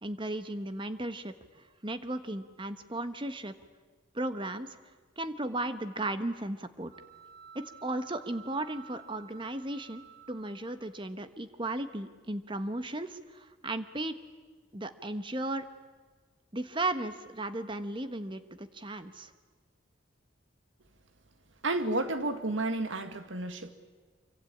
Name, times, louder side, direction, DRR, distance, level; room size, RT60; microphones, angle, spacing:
voice 1, 0.0-3.5 4.1-4.8 5.2-6.9 7.5-14.1 14.7-15.7 16.5-19.3, right 2 dB, 25° right, 10 dB, 1.2 m, -35 dB
sound 1, 6.9-11.0, right 7 dB, 50° right, 2.8 m, -53 dB
voice 2, 21.6-23.7, right 2 dB, 85° right, 9 dB, 2.0 m, -31 dB
26.0 x 24.5 x 8.7 m, 1.4 s
head